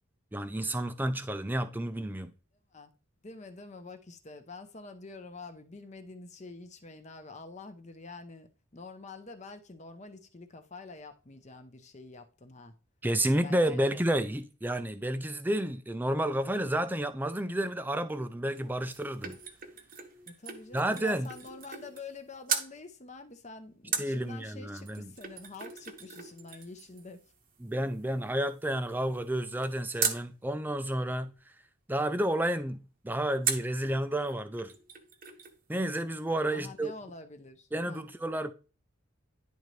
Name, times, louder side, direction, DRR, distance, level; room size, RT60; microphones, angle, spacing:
voice 1, 0.3-2.3 13.0-19.4 20.7-21.3 24.0-25.1 27.6-31.3 31.9-34.7 35.7-36.9 37.7-38.5, right 1 dB, 10° right, 0.4 m, -31 dB
voice 2, 3.2-12.7 13.4-13.9 20.4-27.2 36.5-38.1, left 3 dB, 35° left, 0.7 m, -47 dB
sound 1, 18.6-22.2 22.5-22.7 23.9-30.3 33.4-33.8 34.3-34.4 34.6-35.6 35.9-36.0, right 6 dB, 40° right, 0.9 m, -38 dB
10.5 x 3.9 x 3.2 m
head